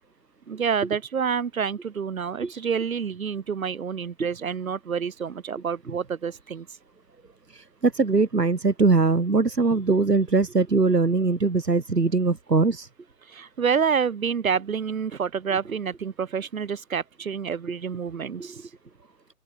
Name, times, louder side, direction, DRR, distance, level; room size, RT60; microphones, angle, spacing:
voice 1, 0.5-6.7 13.3-18.6, right 6 dB, 55° right, 4.9 m, -28 dB
voice 2, 7.5-12.9 18.4-18.5, right 4 dB, 80° right, 3.3 m, -21 dB
open air
figure-of-eight pair, 130°, 48 cm